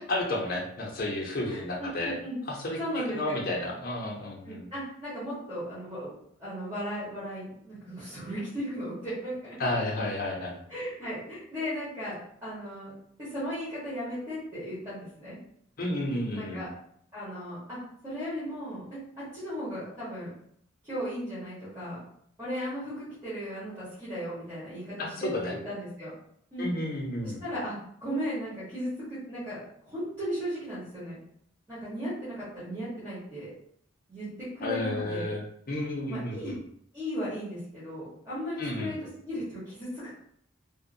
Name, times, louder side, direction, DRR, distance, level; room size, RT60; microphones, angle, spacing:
voice 1, 0.1-2.1 2.5-4.7 9.6-10.5 15.8-16.6 25.0-25.6 26.6-27.4 34.6-36.6 38.6-39.0, left 1 dB, 45° left, -1 dB, 0.6 m, -32 dB
voice 2, 1.5-2.4 2.8-3.4 4.4-6.1 6.4-9.5 10.7-12.9 13.2-15.4 16.4-16.7 17.1-17.8 18.0-18.8 19.2-20.3 20.8-22.0 22.4-26.1 26.5-26.7 27.2-27.8 28.0-31.2 31.7-33.5 34.1-35.3 36.1-36.5 36.9-39.0 39.2-40.1, equal, 15° right, -12 dB, 1.2 m, -36 dB
2.7 x 2.1 x 2.6 m, 0.69 s
head